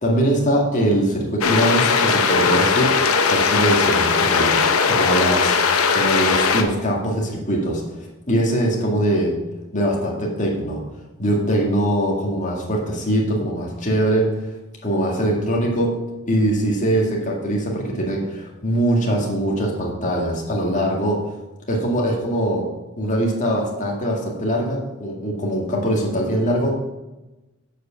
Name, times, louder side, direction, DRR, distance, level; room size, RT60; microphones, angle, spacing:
voice 1, 0.0-5.5 5.9-9.4 9.7-10.8 11.2-14.3 14.8-15.9 16.3-21.2 21.7-22.7 23.0-26.7, right 1 dB, 35° left, -1 dB, 1.9 m, -22 dB
sound 1, 1.4-6.6, left 5 dB, 80° left, 0.9 m, -18 dB
8.0 x 5.1 x 7.1 m, 1.0 s
head